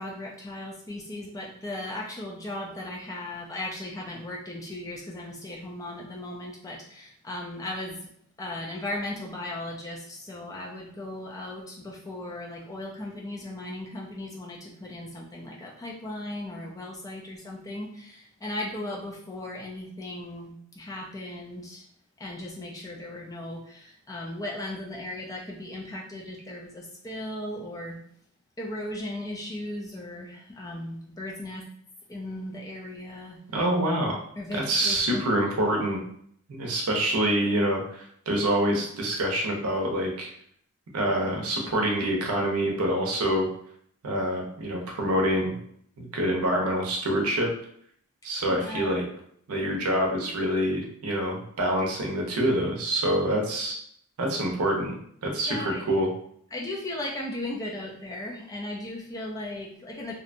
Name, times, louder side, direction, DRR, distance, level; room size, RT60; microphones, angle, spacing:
voice 1, 0.0-8.1 8.4-21.8 22.2-28.0 28.6-31.6 32.1-33.4 34.4-35.4 48.5-48.9 55.5-56.0 56.5-60.2, left 1 dB, 15° left, -2 dB, 0.3 m, -37 dB
voice 2, 33.5-34.2 34.5-36.0 36.5-40.3 40.9-43.5 44.0-45.6 46.0-47.5 48.2-49.0 49.5-53.8 54.2-54.9 55.2-55.5 55.9-56.1, right 1 dB, 90° right, 1 dB, 0.7 m, -26 dB
2.7 x 2.1 x 2.5 m, 0.65 s
head